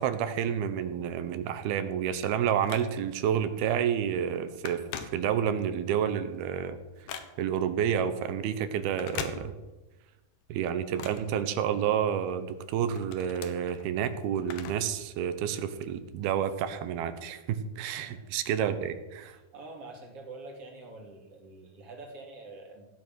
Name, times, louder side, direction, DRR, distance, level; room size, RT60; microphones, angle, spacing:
voice 1, 0.0-4.8 5.1-6.8 7.4-9.5 10.5-19.4, right 9 dB, 75° right, 11 dB, 2.8 m, -29 dB
Telephone, 1.9-3.3 3.8-4.0 4.2-5.7 6.1-7.7 8.8-10.0 10.3-12.0 12.5-15.0 15.3-15.4 16.3-16.4, left 8 dB, 80° left, 3.2 m, -42 dB
voice 2, 18.0-18.4 19.3-22.9, right 2 dB, 40° right, 0 dB, 3.7 m, -46 dB
16.5 x 9.3 x 6.2 m, 1.1 s
omnidirectional pair, 4.7 m